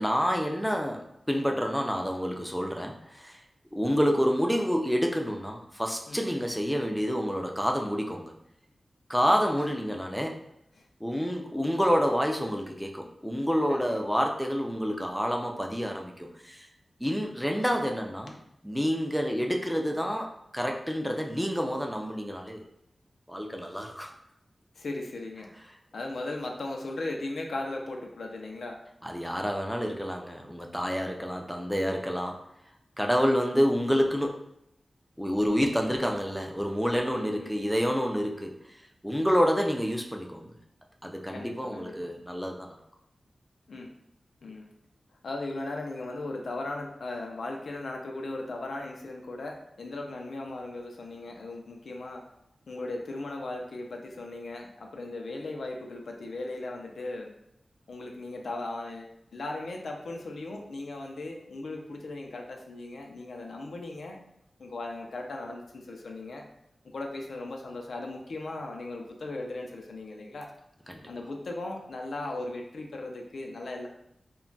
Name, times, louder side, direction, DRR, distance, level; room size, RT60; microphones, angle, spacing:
voice 1, 0.0-3.4 3.7-8.3 9.1-10.4 11.0-16.7 17.0-18.4 18.6-22.6 23.3-24.1 29.0-32.4 33.0-34.4 35.2-38.5 39.0-40.5 41.0-42.8 70.9-71.1, equal, ahead, 2 dB, 0.4 m, -28 dB
voice 2, 24.8-25.5 25.9-28.8 37.1-37.7 41.3-42.1 43.7-43.9 44.4-44.7 45.2-52.2 52.7-57.3 57.9-64.2 64.6-66.4 66.9-70.5 71.1-73.9, left 2 dB, 85° left, 1 dB, 0.4 m, -37 dB
2.2 x 2.1 x 3.8 m, 0.79 s
wide cardioid pair, 100°, 0 cm